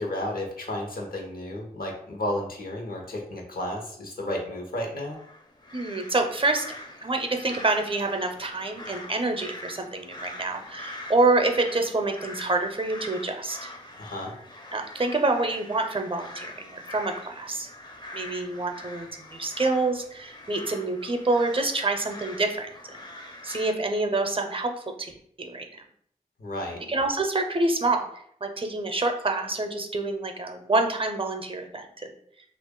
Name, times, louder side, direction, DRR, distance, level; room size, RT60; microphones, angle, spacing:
voice 1, 0.0-5.2 14.0-14.3 26.4-26.8, left 1 dB, 80° left, 0 dB, 0.9 m, -32 dB
sound 1, 5.1-23.7, left 2 dB, 30° left, 0.5 m, -43 dB
voice 2, 5.7-6.6 7.0-13.7 14.7-17.7 18.1-24.7 25.0-25.1 25.4-25.7 26.9-28.1 28.4-32.1, right 2 dB, 35° right, 5 dB, 0.5 m, -27 dB
2.9 x 2.4 x 3.7 m, 0.67 s
cardioid pair, 45°, 15 cm